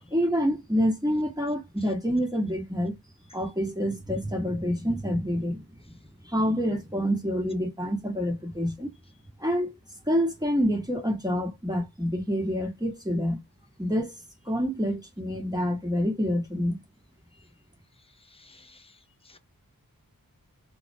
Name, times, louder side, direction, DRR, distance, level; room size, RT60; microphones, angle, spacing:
voice 1, 0.1-3.0 3.3-5.6 6.2-8.9 9.4-9.7 10.1-13.4 13.8-14.1 14.5-16.8, equal, 10° right, 1.0 m, -27 dB
voice 2, 18.3-19.0 19.3-19.4, left 3 dB, 15° left, 0.5 m, -55 dB
2.5 x 2.1 x 2.6 m
wide cardioid pair, 55°, 37 cm